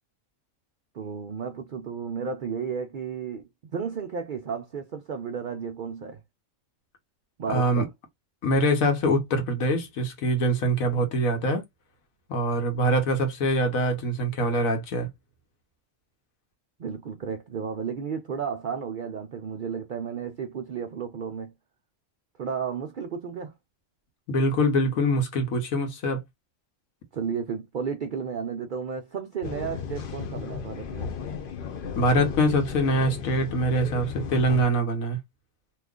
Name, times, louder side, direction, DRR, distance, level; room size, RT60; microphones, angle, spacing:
voice 1, 0.9-3.4 3.7-6.2 7.4-7.9 16.8-21.5 22.4-23.5 27.1-31.1, right 6 dB, 70° right, 0.4 m, -33 dB
voice 2, 7.5-7.8 8.4-11.6 12.3-15.1 24.3-26.2 31.9-35.2, equal, 85° left, 1.4 m, -24 dB
sound 1, 29.4-34.6, left 6 dB, 55° left, 0.6 m, -35 dB
3.0 x 2.3 x 3.6 m
omnidirectional pair, 1.4 m